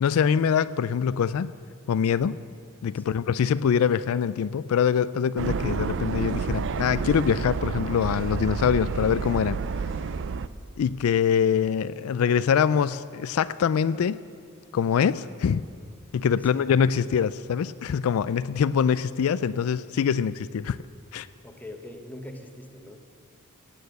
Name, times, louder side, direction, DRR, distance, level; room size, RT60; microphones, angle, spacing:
voice 1, 0.0-1.5 1.9-2.4 2.8-9.6 10.8-14.2 14.7-15.7 16.1-20.8 21.1-21.3, left 7 dB, 70° left, 16 dB, 0.3 m, -24 dB
sound 1, 5.4-10.5, right 5 dB, 55° right, 0.4 m, -29 dB
voice 2, 21.4-23.0, left 1 dB, 10° left, 4 dB, 1.1 m, -42 dB
16.0 x 8.9 x 7.9 m, 2.3 s
head